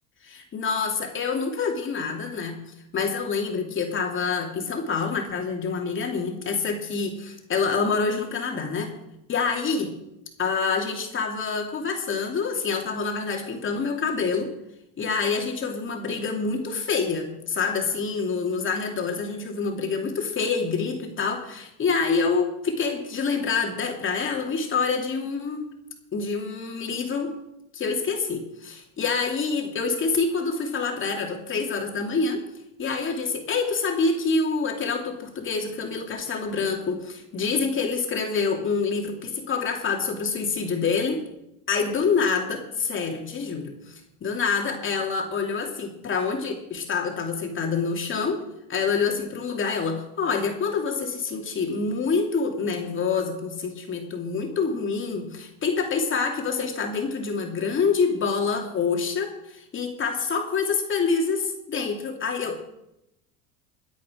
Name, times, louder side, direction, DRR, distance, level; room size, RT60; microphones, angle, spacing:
voice 1, 0.5-2.6 2.9-8.9 9.3-9.9 10.4-14.5 15.0-25.6 26.1-27.3 27.7-32.4 32.8-41.2 41.7-48.4 48.7-62.6, left 5 dB, 35° left, 2 dB, 2.8 m, -26 dB
21.5 x 8.4 x 5.1 m, 0.86 s
supercardioid pair, 110°, 35 cm